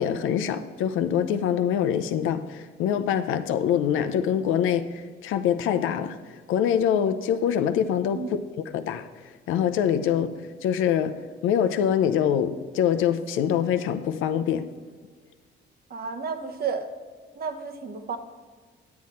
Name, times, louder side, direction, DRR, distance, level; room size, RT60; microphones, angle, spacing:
voice 1, 0.0-6.2 6.5-9.1 9.5-14.7, left 9 dB, 90° left, 0.6 m, -24 dB
voice 2, 15.9-16.9 17.4-18.2, right 5 dB, 50° right, 1.0 m, -32 dB
9.5 x 7.8 x 4.2 m
cardioid pair, 90°, 20 cm